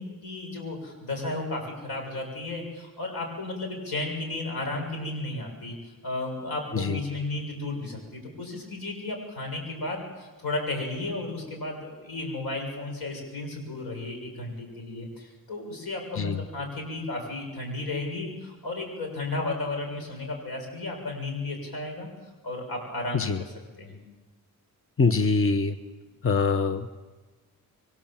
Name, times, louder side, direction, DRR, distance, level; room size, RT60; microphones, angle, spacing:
voice 1, 0.0-5.7 6.0-22.1 22.4-24.0, left 2 dB, 85° left, 3 dB, 7.0 m, -34 dB
voice 2, 25.0-25.8 26.2-26.9, left 4 dB, 35° left, 9 dB, 1.1 m, -24 dB
26.5 x 23.5 x 7.5 m, 1.2 s
cardioid pair, 80°, 36 cm